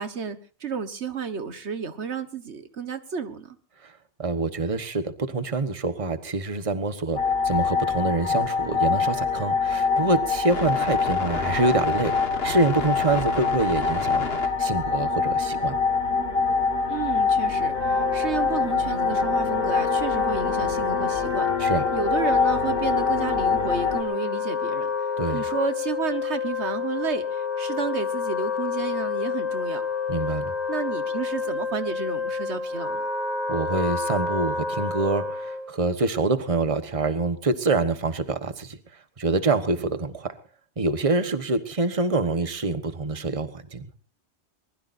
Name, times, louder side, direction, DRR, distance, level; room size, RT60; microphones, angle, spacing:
voice 1, 0.0-3.6 16.9-21.5 21.9-24.9 25.3-29.8 30.7-33.0, right 6 dB, 80° right, 10 dB, 1.7 m, -31 dB
voice 2, 4.2-7.2 7.4-12.1 12.4-15.7 21.6-21.9 25.2-25.4 30.1-30.5 33.5-38.8 39.2-40.3 40.8-43.9, right 3 dB, 30° right, 10 dB, 1.3 m, -26 dB
sound 1, 7.2-24.0, left 5 dB, 60° left, 1.9 m, -25 dB
Wind instrument woodwind instrument, 17.6-35.8, left 5 dB, 80° left, 5.4 m, -29 dB
23.5 x 20.5 x 2.7 m, 0.38 s
omnidirectional pair, 1.1 m